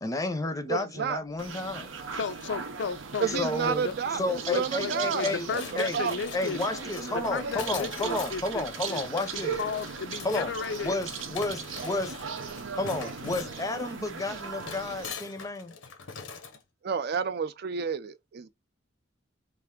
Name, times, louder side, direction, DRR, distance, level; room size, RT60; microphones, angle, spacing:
voice 1, 0.0-1.9 3.4-5.5 5.8-6.1 6.3-9.6 10.2-10.5 10.8-12.1 12.7-15.7, left 2 dB, 15° left, 0.6 m, -31 dB
voice 2, 0.7-1.2 3.2-5.6 5.9-6.2 16.8-18.5, right 6 dB, 55° right, 0.4 m, -30 dB
sound 1, 1.4-15.1, right 5 dB, 85° right, 0.7 m, -38 dB
voice 3, 2.1-4.0 4.5-6.7 7.1-9.0 9.3-11.0, left 5 dB, 65° left, 0.4 m, -34 dB
sound 2, 5.5-16.6, left 6 dB, 90° left, 0.8 m, -44 dB
3.3 x 2.5 x 3.6 m
head